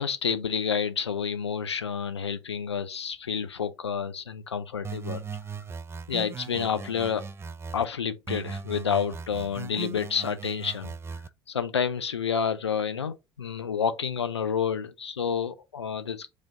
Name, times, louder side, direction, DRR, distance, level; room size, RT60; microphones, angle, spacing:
voice 1, 0.0-5.2 6.1-7.2 7.7-11.2 11.5-16.3, left 7 dB, 85° left, 0.5 m, -29 dB
sound 1, 4.8-7.9 8.3-11.3, right 5 dB, 20° right, 0.3 m, -38 dB
4.9 x 2.5 x 3.7 m
figure-of-eight pair, 60°, 14 cm